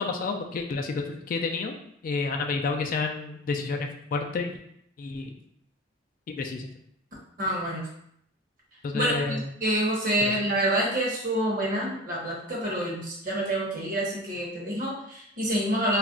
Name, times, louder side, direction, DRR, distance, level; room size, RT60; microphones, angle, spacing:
voice 1, 0.0-1.8 2.0-4.6 5.0-5.3 6.3-6.7 8.8-9.4 10.2-10.4, left 4 dB, 50° left, 4 dB, 0.3 m, -30 dB
voice 2, 7.4-7.9 8.9-16.0, right 1 dB, 50° right, -4 dB, 0.9 m, -27 dB
2.4 x 2.1 x 3.6 m, 0.71 s
head